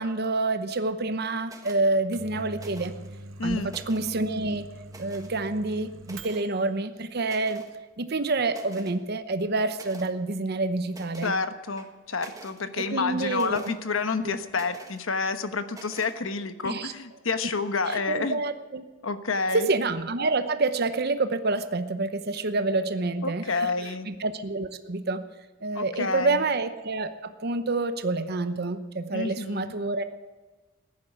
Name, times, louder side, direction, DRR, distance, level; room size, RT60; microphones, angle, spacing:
voice 1, 0.0-2.9 3.4-4.7 5.0-7.6 8.0-11.3 12.8-13.7 14.2-14.4 16.6-16.9 17.9-18.8 19.7-25.2 25.6-30.0, right 3 dB, 50° right, 10 dB, 0.8 m, -28 dB
sound 1, 1.4-1.8 2.5-3.1 3.5-4.2 4.9-5.4 6.0-6.5 7.2-7.7 8.1-8.2 8.5-9.0 9.7-10.1 10.9-11.4 11.8-12.6 13.3-13.8 14.5-15.0 15.7-16.2, right 2 dB, 15° right, 1.5 m, -47 dB
Microwave oven, 1.9-6.7, right 1 dB, 80° right, 1.0 m, -44 dB
voice 2, 3.4-3.8 11.2-18.4 19.0-19.7 23.2-24.1 25.7-26.4 29.1-29.7, left 4 dB, 80° left, 10 dB, 1.2 m, -29 dB
15.0 x 10.5 x 8.0 m, 1.3 s
head